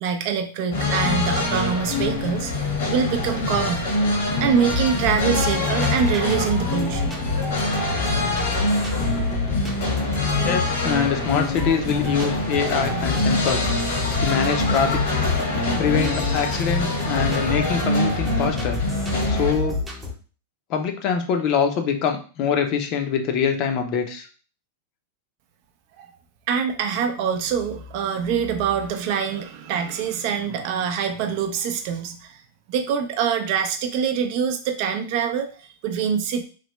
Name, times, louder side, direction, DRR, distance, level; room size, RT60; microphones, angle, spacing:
voice 1, 0.0-2.5 2.9-3.9 4.4-7.2 26.0-26.1 26.5-32.4 32.7-36.4, right 7 dB, 50° right, 7 dB, 0.5 m, -24 dB
sound 1, 0.7-19.5, left 2 dB, 80° left, 1.2 m, -25 dB
sound 2, 4.7-20.1, left 3 dB, 10° right, 0.7 m, -29 dB
voice 2, 10.4-13.7 14.2-15.0 15.8-18.8 19.3-19.8 20.7-24.3, left 6 dB, 45° left, 5 dB, 0.6 m, -24 dB
3.2 x 2.1 x 3.0 m, 0.39 s
hypercardioid pair, 130°, 0 cm